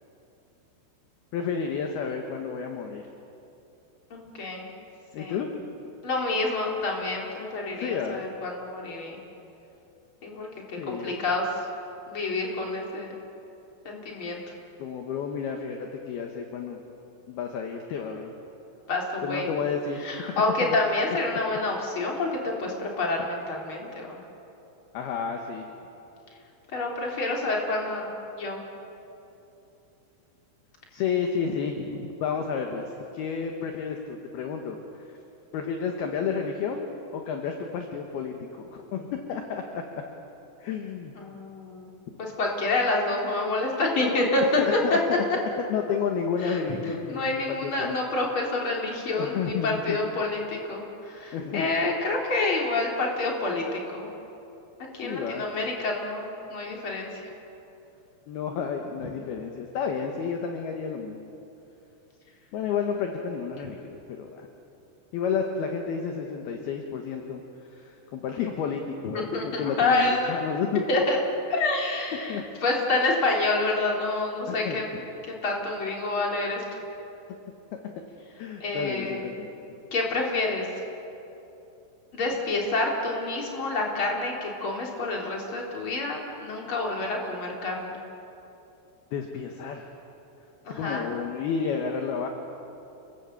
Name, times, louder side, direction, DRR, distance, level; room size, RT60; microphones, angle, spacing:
voice 1, 1.3-3.1 5.1-5.5 7.8-8.2 10.8-11.1 14.8-16.8 17.3-18.3 19.2-20.2 20.6-20.8 24.9-25.7 30.9-35.2 35.5-40.0 40.6-41.1 44.6-45.3 45.7-48.0 49.2-50.0 51.3-51.7 55.0-55.4 58.3-61.3 62.5-64.5 65.1-67.4 67.7-70.8 72.1-72.4 74.5-75.0 77.8-78.0 78.4-79.8 89.1-89.9 90.7-92.3, left 6 dB, 65° left, 3 dB, 2.8 m, -31 dB
voice 2, 4.1-4.7 5.2-5.4 6.0-9.2 10.2-10.5 10.9-11.5 12.1-13.1 13.9-14.4 18.9-19.5 20.0-24.2 26.7-28.1 28.4-28.6 41.2-41.9 42.2-44.8 46.4-46.6 47.1-54.1 54.8-57.3 69.1-70.4 70.9-71.2 71.5-74.8 75.4-76.6 78.6-79.2 79.9-80.7 82.1-88.0 90.6-91.1, left 2 dB, 30° left, -1 dB, 3.9 m, -28 dB
29.5 x 19.5 x 8.3 m, 2.9 s
omnidirectional pair, 5.7 m